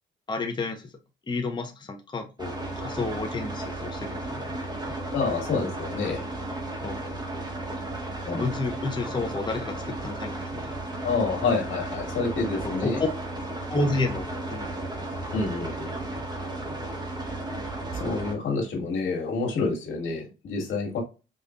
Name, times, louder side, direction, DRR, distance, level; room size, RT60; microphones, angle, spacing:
voice 1, 0.3-0.9 1.3-4.5 6.8-7.0 8.3-10.7 12.6-13.1 13.7-15.1 16.5-16.8, left 3 dB, 20° left, 3 dB, 0.7 m, -31 dB
sound 1, 2.4-18.3, right 2 dB, 20° right, 1.4 m, -34 dB
voice 2, 5.1-6.2 8.3-8.4 11.0-13.0 15.3-15.9 17.9-21.0, left 4 dB, 80° left, 0 dB, 1.9 m, -28 dB
5.3 x 2.6 x 2.4 m, 0.29 s
cardioid pair, 90°, 20 cm